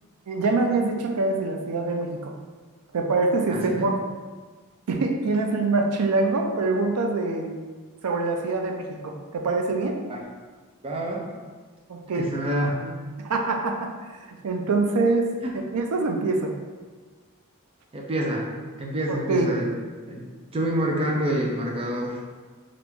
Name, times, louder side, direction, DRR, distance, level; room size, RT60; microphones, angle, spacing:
voice 1, 0.3-2.3 2.9-3.9 4.9-7.5 8.0-10.0 11.9-12.3 12.7-12.9 13.2-15.3 15.7-16.5 19.1-19.5, right 3 dB, 85° right, 3 dB, 0.5 m, -25 dB
voice 2, 3.5-3.9 10.1-10.2 10.8-11.3 12.1-12.7 15.4-15.5 17.9-18.5 18.8-19.7 20.1-22.2, right 1 dB, 25° right, -1 dB, 0.5 m, -27 dB
2.9 x 2.5 x 3.5 m, 1.4 s
head